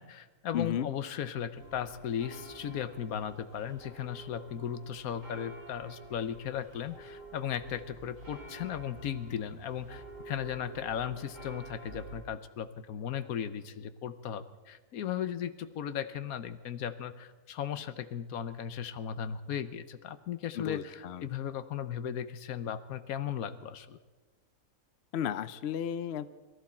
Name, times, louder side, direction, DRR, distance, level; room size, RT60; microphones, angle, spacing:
voice 1, 0.0-24.0, left 9 dB, 75° left, 12 dB, 1.2 m, -36 dB
voice 2, 0.5-0.9 20.6-21.3 25.1-26.3, left 9 dB, 60° left, 13 dB, 0.7 m, -33 dB
sound 1, 1.6-12.2, right 2 dB, 60° right, 3.8 m, -49 dB
22.0 x 14.0 x 4.3 m, 1.3 s
omnidirectional pair, 1.5 m